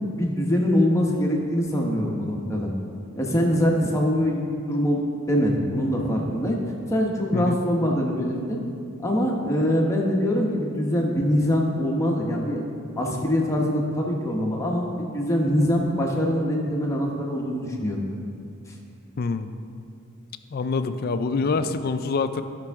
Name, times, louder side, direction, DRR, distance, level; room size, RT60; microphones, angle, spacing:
voice 1, 0.2-2.7 3.2-4.4 4.7-5.0 5.3-6.6 6.9-8.6 9.0-12.6 13.0-18.0, equal, 15° left, -1 dB, 1.0 m, -23 dB
voice 2, 19.2-19.5 20.5-22.4, left 4 dB, 45° left, 10 dB, 0.4 m, -25 dB
14.5 x 6.0 x 3.5 m, 2.5 s
head